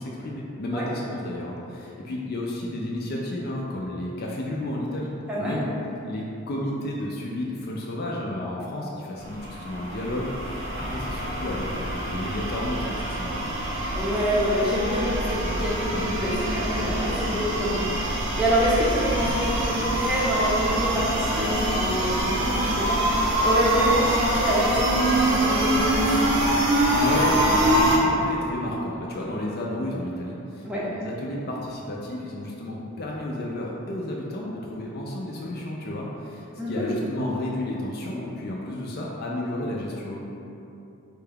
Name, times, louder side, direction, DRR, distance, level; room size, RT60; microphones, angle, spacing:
voice 1, 0.0-5.6 6.0-13.6 26.9-40.2, left 1 dB, 45° left, -3 dB, 0.4 m, -32 dB
voice 2, 5.3-5.6 13.9-26.4 30.6-30.8 36.6-37.0, equal, 5° right, -8 dB, 0.6 m, -26 dB
sound 1, 9.2-28.0, right 1 dB, 55° right, 0.5 m, -25 dB
4.3 x 2.3 x 3.4 m, 2.8 s
head